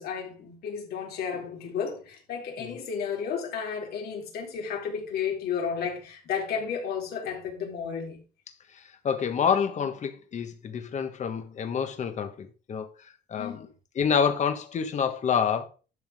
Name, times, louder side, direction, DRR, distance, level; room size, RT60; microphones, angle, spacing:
voice 1, 0.0-8.2 13.3-13.6, left 6 dB, 70° left, 4.0 m, -32 dB
voice 2, 9.0-12.9 13.3-13.7 14.0-15.7, left 7 dB, 45° left, 1.7 m, -27 dB
11.5 x 7.2 x 3.7 m
cardioid pair, 110°, 17 cm